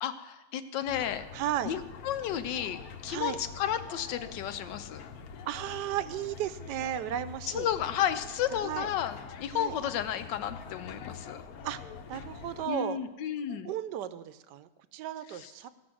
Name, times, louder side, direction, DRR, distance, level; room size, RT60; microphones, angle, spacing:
voice 1, 0.0-1.3 1.6-5.0 7.5-11.4 12.7-13.7 15.4-15.5, left 10 dB, 90° left, 11 dB, 1.4 m, -32 dB
sound 1, 0.9-12.7, left 6 dB, 65° left, 1.2 m, -45 dB
voice 2, 1.3-1.8 3.1-3.4 5.5-7.7 8.5-8.9 9.5-9.8 11.6-11.8 12.1-13.0 13.5-15.7, right 11 dB, 75° right, 13 dB, 1.2 m, -35 dB
16.0 x 6.0 x 6.2 m, 1.1 s
omnidirectional pair, 1.9 m